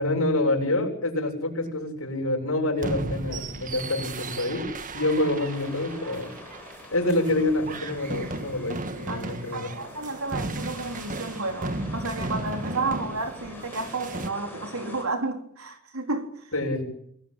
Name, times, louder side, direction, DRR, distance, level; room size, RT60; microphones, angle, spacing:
voice 1, 0.0-4.7 4.9-6.3 6.9-9.7 16.5-16.8, left 1 dB, 75° left, 7.8 m, -27 dB
sound 1, 2.8-14.3, right 2 dB, 40° right, 1.7 m, -35 dB
sound 2, 5.1-15.0, left 2 dB, 10° left, 7.4 m, -46 dB
voice 2, 9.1-16.4, right 3 dB, 85° right, 3.8 m, -32 dB
27.5 x 18.5 x 9.0 m
head